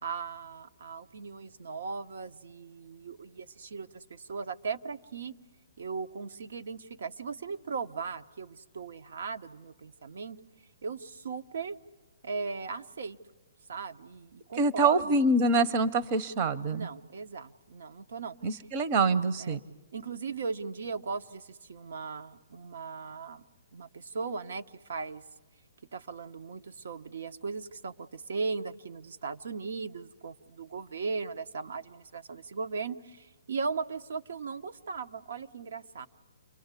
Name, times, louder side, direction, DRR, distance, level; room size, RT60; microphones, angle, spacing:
voice 1, 0.0-5.4 5.8-10.4 10.8-11.8 12.2-13.2 13.7-15.1 16.7-18.4 19.4-19.6 19.9-23.4 23.7-25.2 25.9-36.1, right 4 dB, 70° right, 9 dB, 0.9 m, -38 dB
voice 2, 14.6-16.9 18.4-19.6, right 3 dB, 35° right, 12 dB, 0.9 m, -25 dB
29.0 x 23.0 x 8.3 m, 1.2 s
hypercardioid pair, 155°, 0 cm